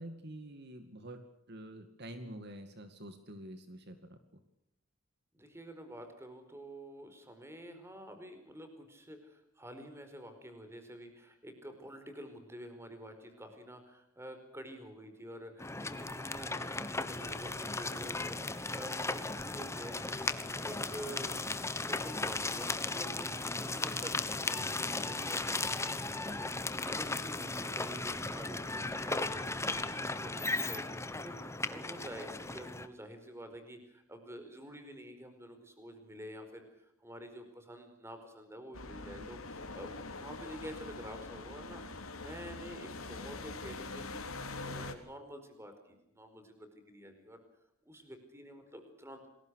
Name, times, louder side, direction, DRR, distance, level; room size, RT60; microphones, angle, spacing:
voice 1, 0.0-4.4 39.2-39.3, right 1 dB, 50° right, 8 dB, 2.3 m, -47 dB
voice 2, 5.3-47.4 47.8-49.3, equal, 10° right, 7 dB, 4.6 m, -49 dB
sound 1, 15.6-32.9, left 3 dB, 15° left, 1.3 m, -36 dB
sound 2, 38.7-44.9, left 3 dB, 85° left, 3.3 m, -44 dB
29.0 x 21.0 x 6.5 m, 0.83 s
head